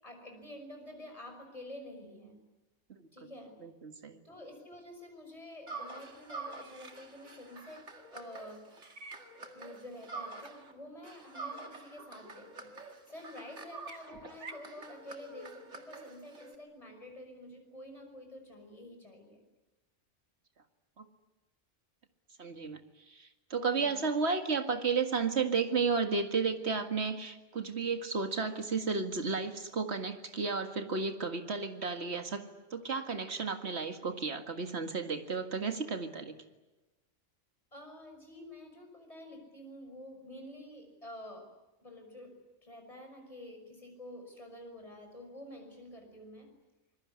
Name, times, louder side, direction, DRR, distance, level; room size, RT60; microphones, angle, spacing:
voice 1, 0.0-2.4 3.1-3.6 4.2-8.8 9.5-12.7 13.1-19.4 23.7-24.1 37.7-41.5 41.8-42.3 42.6-46.5, left 1 dB, 30° left, 3 dB, 6.0 m, -49 dB
voice 2, 3.6-4.2 21.0-21.1 22.4-22.8 23.1-32.4 32.7-36.3, right 4 dB, 65° right, 6 dB, 2.2 m, -33 dB
sound 1, 5.7-10.7 11.0-16.6, right 3 dB, 80° right, 2.5 m, -46 dB
26.5 x 21.5 x 9.7 m, 1.1 s
omnidirectional pair, 1.2 m